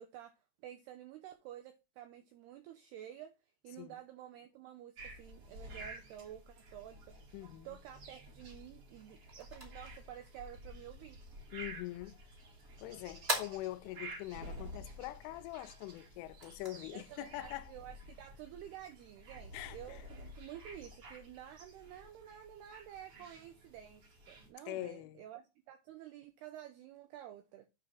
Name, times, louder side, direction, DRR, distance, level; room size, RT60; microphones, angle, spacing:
voice 1, 0.0-3.3 3.6-7.2 7.7-11.2 16.9-27.7, right 11 dB, 85° right, 2.3 m, -51 dB
sound 1, 5.0-24.5, right 1 dB, 40° right, 2.3 m, -52 dB
voice 2, 7.3-7.8 11.5-12.2 12.8-17.7 19.5-20.0 24.7-25.2, left 17 dB, 85° left, 3.2 m, -44 dB
sound 2, 8.9-18.7, right 1 dB, 20° right, 1.8 m, -46 dB
9.1 x 3.8 x 5.8 m
omnidirectional pair, 5.5 m